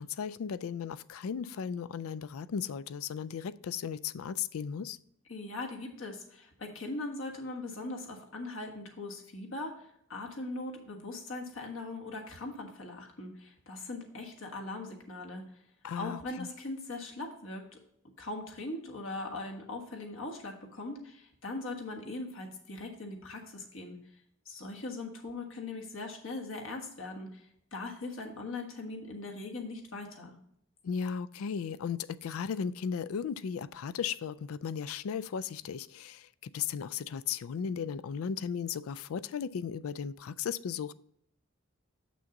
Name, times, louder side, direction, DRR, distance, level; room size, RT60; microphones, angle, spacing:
voice 1, 0.0-5.0 15.8-16.5 30.8-40.9, left 7 dB, 80° left, 18 dB, 0.4 m, -36 dB
voice 2, 5.3-15.4 16.0-17.8 18.2-24.0 24.4-27.4 27.7-30.3, left 2 dB, 65° left, 1 dB, 1.4 m, -40 dB
7.1 x 6.2 x 3.8 m, 0.73 s
head